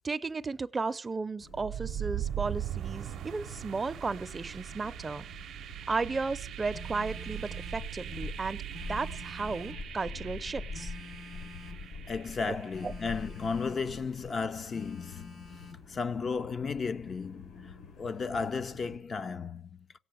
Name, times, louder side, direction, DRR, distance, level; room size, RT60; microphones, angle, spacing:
voice 1, 0.0-5.3 5.9-8.6 8.9-10.9 12.5-12.9, right 4 dB, 25° right, 0.6 m, -34 dB
sound 1, 1.4-19.0, left 4 dB, 80° left, 5.2 m, -47 dB
sound 2, 1.5-13.4, right 11 dB, 75° right, 0.6 m, -40 dB
Telephone, 6.7-7.9 8.7-9.9 10.7-11.9 12.7-13.9 14.7-15.9, left 4 dB, 55° left, 2.7 m, -49 dB
voice 2, 12.1-15.5 15.9-19.9, left 5 dB, 40° left, 0.6 m, -34 dB
17.0 x 7.7 x 7.8 m
cardioid pair, 125°, 0 cm